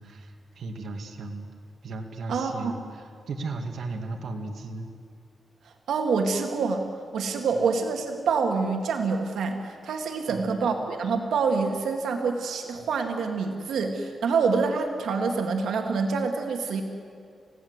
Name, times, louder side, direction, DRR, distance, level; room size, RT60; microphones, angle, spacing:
voice 1, 0.0-1.5 1.8-4.9 10.3-10.5, right 3 dB, 70° right, 3 dB, 2.2 m, -36 dB
voice 2, 2.3-2.7 5.6-6.8 7.1-16.8, right 4 dB, 90° right, 4 dB, 2.1 m, -26 dB
29.5 x 17.0 x 8.1 m, 2.4 s
wide cardioid pair, 120°, 0 cm